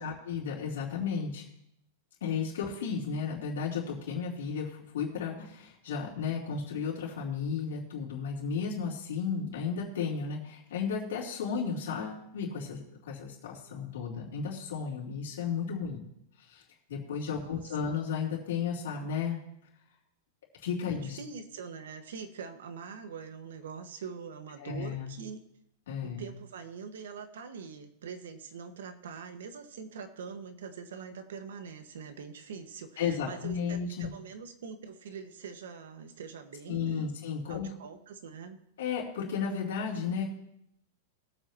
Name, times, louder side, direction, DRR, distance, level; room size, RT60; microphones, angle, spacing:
voice 1, 0.0-1.4 2.2-16.0 16.4-16.6 16.9-19.4 20.6-21.2 24.6-25.1 25.9-26.2 33.0-34.1 36.7-37.7 38.8-40.3, left 6 dB, 75° left, -5 dB, 3.2 m, -34 dB
voice 2, 17.3-17.8 20.9-25.4 26.0-37.1 37.5-38.6, right 6 dB, 85° right, 7 dB, 1.5 m, -44 dB
21.5 x 8.2 x 3.0 m, 0.74 s
supercardioid pair, 170°, 0 cm